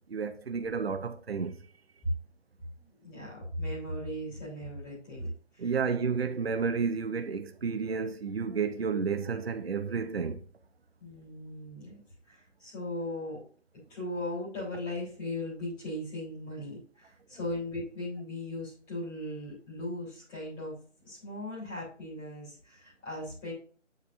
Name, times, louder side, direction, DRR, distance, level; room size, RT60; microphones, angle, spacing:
voice 1, 0.1-1.6 5.6-10.5, right 5 dB, 55° right, 0.8 m, -31 dB
voice 2, 3.0-5.7 11.0-12.0 12.3-13.4 13.9-20.8 21.0-23.5, left 1 dB, 10° left, 3.0 m, -38 dB
9.9 x 5.2 x 2.6 m
figure-of-eight pair, 150°, 37 cm